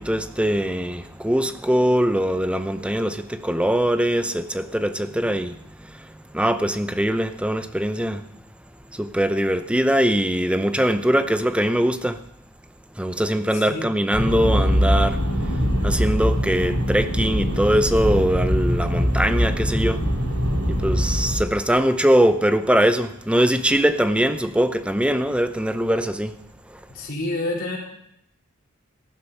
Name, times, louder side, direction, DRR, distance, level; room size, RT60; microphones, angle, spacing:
voice 1, 0.0-8.2 8.9-12.2 12.9-20.1 20.7-26.4 26.7-26.8, equal, 5° right, 0.6 m, -22 dB
sound 1, 14.1-21.4, equal, 85° right, 3.5 m, -22 dB
voice 2, 26.9-27.8, left 2 dB, 45° left, 4.4 m, -28 dB
15.0 x 11.5 x 5.6 m
head